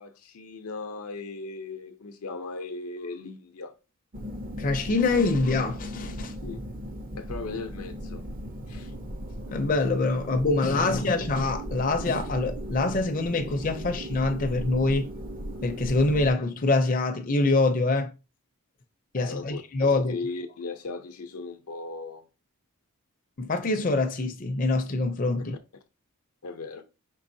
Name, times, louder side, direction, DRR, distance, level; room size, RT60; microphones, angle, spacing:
voice 1, 0.0-3.7 6.4-6.6 7.2-8.2 8.7-8.9 10.8-10.9 19.2-22.3 26.4-26.8, left 3 dB, 80° left, 0.6 m, -37 dB
sound 1, 4.1-16.3, equal, 40° right, 0.6 m, -37 dB
voice 2, 4.6-6.3 9.5-15.1 15.6-18.1 19.1-20.2 23.4-25.5, left 3 dB, 35° left, 0.5 m, -25 dB
5.3 x 3.4 x 2.7 m
head